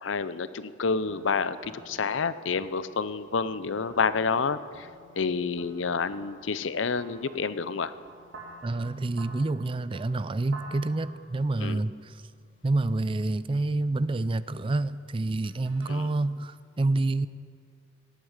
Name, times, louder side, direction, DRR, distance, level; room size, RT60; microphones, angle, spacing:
voice 1, 0.0-4.9 5.1-7.9 11.6-11.8 15.9-16.1, left 5 dB, 80° left, 14 dB, 0.6 m, -29 dB
sound 1, 1.0-15.9, right 2 dB, 75° right, 3.0 m, -52 dB
voice 2, 8.6-12.1 12.6-17.3, right 2 dB, 25° right, 15 dB, 0.4 m, -28 dB
18.0 x 8.0 x 9.0 m, 2.2 s
head